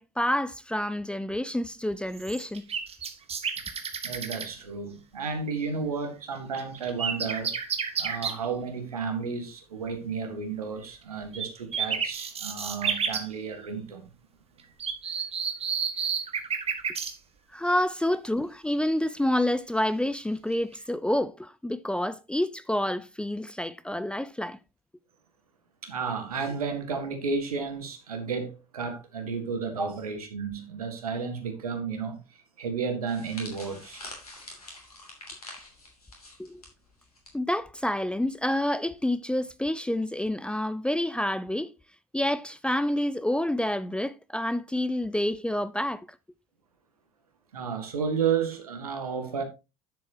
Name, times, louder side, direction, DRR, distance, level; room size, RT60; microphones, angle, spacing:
voice 1, 0.0-2.7 17.5-24.6 29.8-29.9 36.4-36.6 37.3-41.7 42.1-46.1, left 1 dB, 5° left, 0.5 m, -28 dB
sound 1, 2.2-4.5 6.6-8.4 11.3-11.5 11.7-13.3 14.8-17.1 20.5-20.7, right 6 dB, 35° right, 1.7 m, -31 dB
voice 2, 4.0-7.5 8.0-14.0 25.8-32.2 32.6-34.0 47.5-49.4, right 5 dB, 80° right, 1.9 m, -32 dB
sound 2, 33.1-37.3 37.6-37.8 38.7-39.0, left 2 dB, 85° left, 3.0 m, -45 dB
10.0 x 7.7 x 2.9 m
figure-of-eight pair, 70°, 19 cm